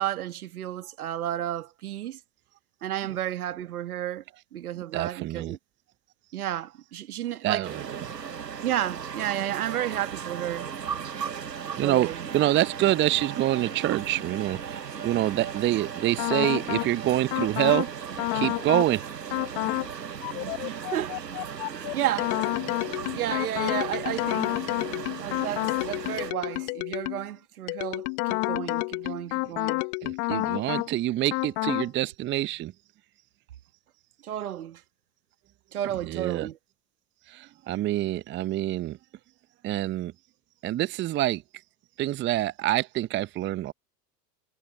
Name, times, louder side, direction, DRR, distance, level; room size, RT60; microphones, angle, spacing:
voice 1, 0.0-2.2 2.8-4.2 4.5-5.6 6.3-7.7 8.6-10.7 11.8-12.2 20.6-21.2 21.7-22.4 23.1-24.5 25.2-29.8 34.2-34.8 35.7-36.6, right 12 dB, 65° right, 2.1 m, -32 dB
voice 2, 4.9-5.6 7.4-7.9 11.8-14.8 15.0-17.9 18.3-19.0 30.0-32.7 36.1-36.5 37.3-39.0 39.6-40.1 40.6-41.4 42.0-43.7, right 14 dB, 25° right, 0.9 m, -26 dB
sound 1, 7.6-26.3, right 7 dB, 85° right, 1.0 m, -37 dB
sound 2, 16.2-16.9 17.3-17.9 18.2-18.9 19.3-19.9 20.2-27.3 27.7-30.9 31.3-31.9, left 40 dB or more, 40° left, 1.0 m, -29 dB
figure-of-eight pair, 90°, 48 cm